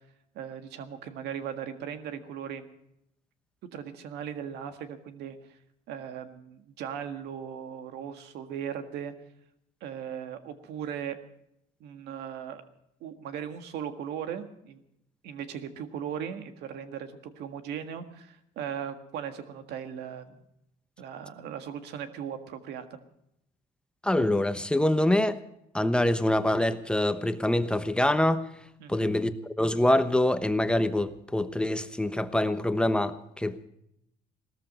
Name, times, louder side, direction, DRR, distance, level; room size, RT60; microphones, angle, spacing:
voice 1, 0.4-2.7 3.7-5.6 5.9-9.1 9.8-11.2 11.8-12.6 13.0-14.8 15.2-20.4 21.0-23.0 28.8-29.1, right 8 dB, 80° right, 1.7 m, -38 dB
voice 2, 24.0-25.4 25.7-28.5 28.9-29.3 29.6-33.7, left 1 dB, 5° left, 1.0 m, -25 dB
18.0 x 13.5 x 5.4 m
cardioid pair, 110°, 17 cm